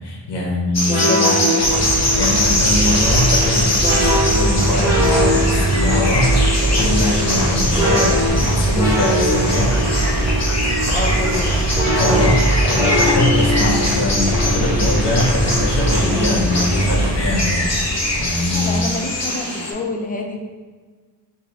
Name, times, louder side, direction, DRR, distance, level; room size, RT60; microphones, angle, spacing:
voice 1, 0.0-1.3 2.1-9.7 12.0-17.6 18.1-18.8, left 2 dB, 70° left, -2 dB, 0.9 m, -22 dB
sound 1, 0.7-19.7, left 1 dB, 40° left, 0.8 m, -23 dB
sound 2, 0.9-17.1, equal, 10° right, 1.0 m, -24 dB
voice 2, 1.1-1.7 10.9-11.7 18.5-20.4, left 3 dB, 20° left, 2 dB, 0.5 m, -27 dB
sound 3, 1.6-18.9, right 1 dB, 65° right, 0.8 m, -21 dB
2.9 x 2.7 x 3.9 m, 1.4 s
wide cardioid pair, 70°, 43 cm